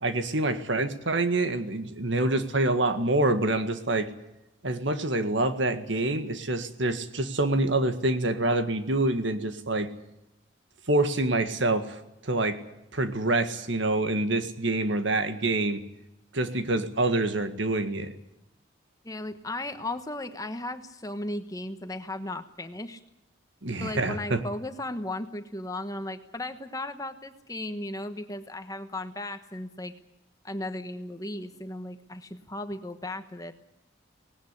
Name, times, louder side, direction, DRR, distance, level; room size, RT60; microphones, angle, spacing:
voice 1, 0.0-4.1 4.6-9.9 10.9-12.6 12.9-15.8 16.3-18.2 23.6-24.4, right 2 dB, 70° right, 9 dB, 1.8 m, -26 dB
voice 2, 19.0-23.0 23.8-29.9 30.4-33.5, left 1 dB, 15° left, 8 dB, 1.2 m, -36 dB
19.0 x 17.5 x 9.9 m, 0.89 s
head